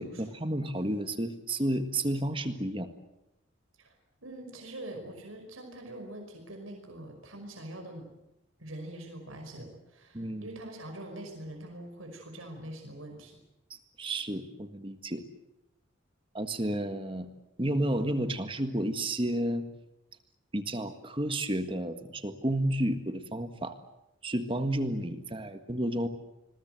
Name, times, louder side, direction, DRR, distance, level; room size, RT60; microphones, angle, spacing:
voice 1, 0.0-2.9 10.1-10.5 14.0-15.2 16.3-17.3 17.6-19.7 20.5-23.8 24.2-26.1, right 1 dB, 25° right, 8 dB, 1.7 m, -31 dB
voice 2, 4.2-8.1 8.6-13.4, right 1 dB, 85° right, 3 dB, 5.5 m, -44 dB
28.0 x 21.5 x 7.9 m, 0.90 s
head